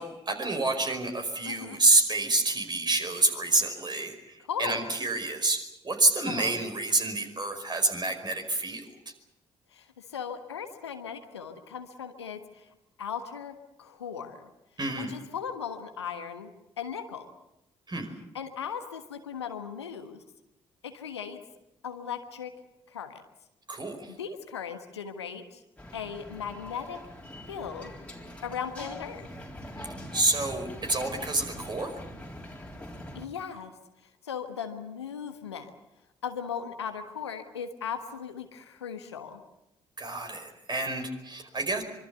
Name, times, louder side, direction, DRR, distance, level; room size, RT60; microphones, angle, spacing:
voice 1, 0.0-8.9 14.8-15.1 17.9-18.1 23.7-24.1 29.8-31.9 40.0-41.8, right 2 dB, 30° right, 6 dB, 5.1 m, -28 dB
voice 2, 1.4-1.8 4.5-4.9 6.3-6.5 9.7-12.6 13.0-14.5 14.9-16.5 16.8-17.3 18.3-20.2 20.8-21.4 21.8-22.5 22.9-23.2 24.1-25.6 25.9-27.0 27.5-27.9 28.4-29.3 33.1-33.7 34.2-35.7 36.2-39.4, left 7 dB, 80° left, 8 dB, 1.3 m, -37 dB
sound 1, 25.8-33.3, equal, 10° left, 4.1 m, -43 dB
25.0 x 24.5 x 6.9 m, 0.90 s
figure-of-eight pair, 40°, 14 cm